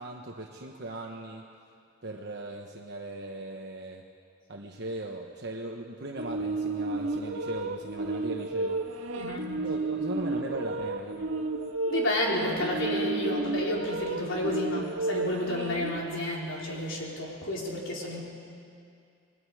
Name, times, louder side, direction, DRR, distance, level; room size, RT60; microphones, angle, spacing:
voice 1, 0.0-1.5 2.0-4.0 4.5-8.8 9.6-11.3 14.5-14.7, right 2 dB, 55° right, 0 dB, 1.1 m, -39 dB
sound 1, 6.2-16.0, right 3 dB, 75° right, 1.8 m, -32 dB
voice 2, 9.1-9.5 11.9-18.2, left 1 dB, 65° left, -3 dB, 4.2 m, -31 dB
28.5 x 20.5 x 4.9 m, 2.4 s
head